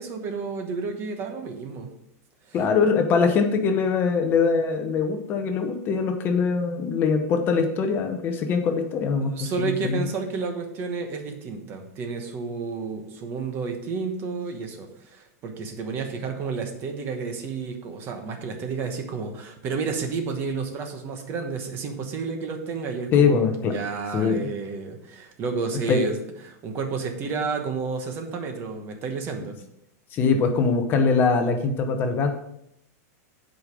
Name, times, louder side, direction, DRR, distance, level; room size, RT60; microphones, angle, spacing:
voice 1, 0.0-1.9 2.5-2.6 9.2-29.6, right 4 dB, 25° right, 5 dB, 1.1 m, -31 dB
voice 2, 2.5-10.1 23.1-23.7 24.1-24.5 25.9-26.0 30.1-32.3, left 5 dB, 25° left, 6 dB, 0.8 m, -22 dB
8.0 x 5.2 x 5.2 m, 0.77 s
supercardioid pair, 170°, 9 cm